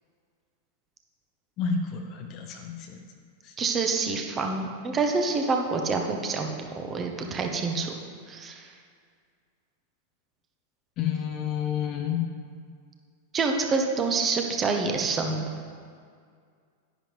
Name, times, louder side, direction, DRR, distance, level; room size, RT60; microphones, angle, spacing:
voice 1, 1.6-3.0 3.4-3.5 11.0-12.2, left 7 dB, 35° left, 3 dB, 0.8 m, -30 dB
voice 2, 3.6-6.5 6.8-7.9 8.3-8.7 13.3-15.5, right 4 dB, 25° right, 3 dB, 1.2 m, -27 dB
10.5 x 10.0 x 3.4 m, 2.1 s
figure-of-eight pair, 90°, 0 cm